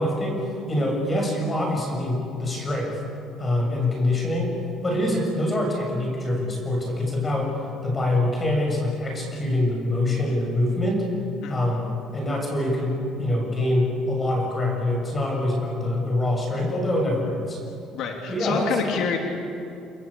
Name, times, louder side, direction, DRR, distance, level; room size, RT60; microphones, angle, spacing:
voice 1, 0.0-3.0 3.4-4.5 4.8-7.5 7.8-11.1 11.5-17.6 18.3-18.7, left 1 dB, 20° left, 0 dB, 7.0 m, -25 dB
voice 2, 17.9-19.2, left 6 dB, 60° left, 2 dB, 3.2 m, -27 dB
29.5 x 20.5 x 8.6 m, 2.6 s
cardioid pair, 145°, 0 cm